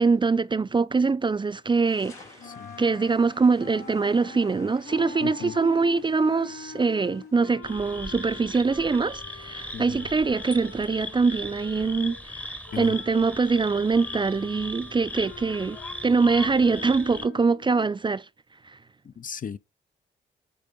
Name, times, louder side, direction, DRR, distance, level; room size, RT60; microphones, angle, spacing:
voice 1, 0.0-2.4 2.8-15.8 16.0-18.3 18.6-18.8, right 4 dB, 25° right, 0.4 m, -23 dB
sound 1, 1.8-7.6, left 4 dB, 80° left, 1.9 m, -52 dB
sound 2, 2.4-12.2 12.6-17.9, left 5 dB, 60° left, 3.1 m, -45 dB
voice 2, 5.2-5.5 9.7-9.8 12.7-12.9 19.2-19.6, left 7 dB, 40° left, 0.5 m, -34 dB
sound 3, 7.6-17.3, left 1 dB, 5° left, 0.9 m, -38 dB
8.4 x 3.4 x 5.2 m
hypercardioid pair, 45°, 21 cm